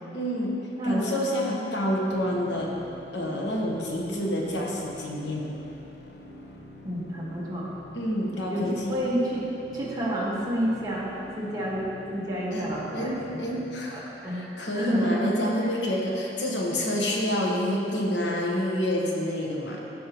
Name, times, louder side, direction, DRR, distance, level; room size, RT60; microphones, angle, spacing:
voice 1, 0.1-0.6 0.8-2.7 3.1-5.5 7.9-9.0 12.5-19.8, equal, 80° left, -2 dB, 1.2 m, -28 dB
voice 2, 0.8-1.1 3.9-4.6 6.8-7.7 8.5-9.4 9.7-11.1 11.4-11.8 12.1-13.4 13.9-15.3 15.6-15.8, equal, 20° right, -6 dB, 1.6 m, -30 dB
sound 1, 2.1-14.1, equal, 65° left, 0.8 m, -46 dB
14.0 x 5.4 x 3.0 m, 2.9 s
head